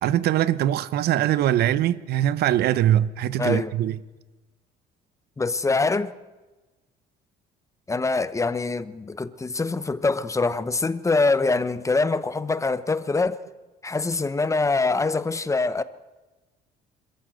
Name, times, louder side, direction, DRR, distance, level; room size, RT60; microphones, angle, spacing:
voice 1, 0.0-4.0, right 12 dB, 70° right, 0.8 m, -22 dB
voice 2, 3.4-3.7 5.4-6.1 7.9-13.4 13.8-15.8, left 3 dB, 20° left, 0.9 m, -24 dB
25.5 x 13.5 x 7.9 m
cardioid pair, 110°, 17 cm